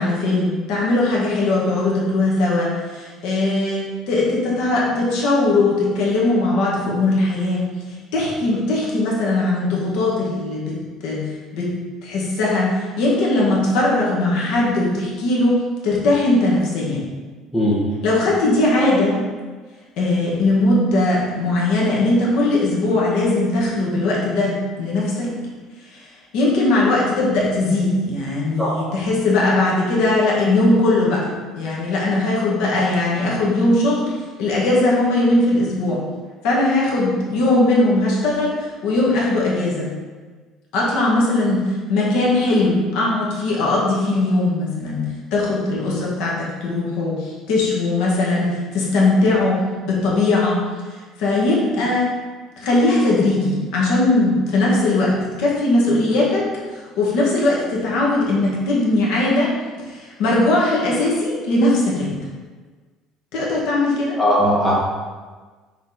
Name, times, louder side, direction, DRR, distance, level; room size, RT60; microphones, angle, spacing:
voice 1, 0.0-7.6 7.9-11.3 11.5-11.7 12.0-15.6 15.8-17.0 18.0-19.2 20.0-25.3 25.9-26.1 26.3-31.3 31.6-34.1 34.4-36.0 36.4-39.9 40.7-45.1 45.3-49.6 49.9-50.6 51.2-52.1 52.6-56.5 57.0-59.5 59.8-62.2 63.3-64.2, left 2 dB, 65° left, -4 dB, 1.8 m, -19 dB
voice 2, 64.2-64.7, equal, 10° left, -6 dB, 1.2 m, -18 dB
6.1 x 4.2 x 4.3 m, 1.4 s
cardioid pair, 170°, 0 cm